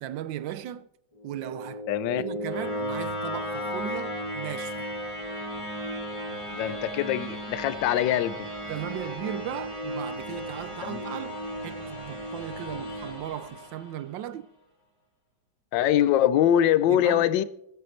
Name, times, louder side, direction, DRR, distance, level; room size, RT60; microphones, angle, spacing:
voice 1, 0.0-0.9 1.2-1.8 2.2-4.9 8.7-14.5 16.9-17.3, right 12 dB, 75° right, 1.2 m, -37 dB
sound 1, 1.2-14.2, equal, 15° left, 2.8 m, -35 dB
voice 2, 1.9-2.2 6.5-8.5 10.8-11.1 15.7-17.4, left 11 dB, 70° left, 1.3 m, -23 dB
22.0 x 7.9 x 4.4 m
omnidirectional pair, 2.2 m